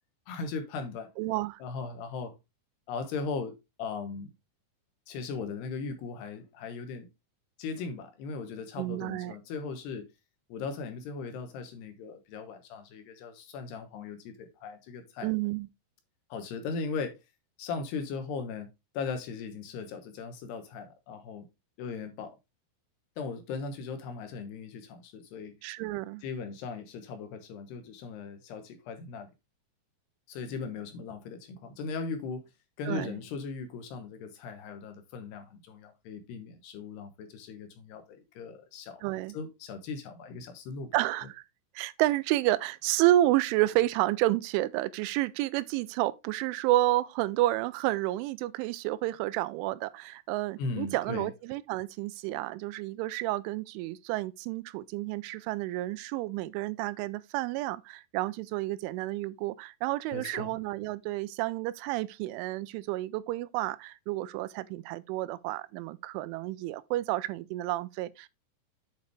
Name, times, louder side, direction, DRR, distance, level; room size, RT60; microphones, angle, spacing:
voice 1, 0.3-1.1 1.6-2.3 2.9-4.3 5.1-7.1 7.6-10.1 10.5-15.3 16.3-17.2 17.6-18.7 18.9-21.5 21.8-22.4 23.2-25.5 26.2-29.3 30.3-32.4 32.8-39.0 39.3-40.9 50.6-51.3 60.1-60.5, left 4 dB, 70° left, 2.9 m, -38 dB
voice 2, 1.2-1.6 8.8-9.4 15.2-15.7 25.6-26.2 32.9-33.2 39.0-39.4 40.9-41.4 41.8-68.3, right 16 dB, 85° right, 3.1 m, -30 dB
8.3 x 6.6 x 3.3 m
omnidirectional pair, 5.5 m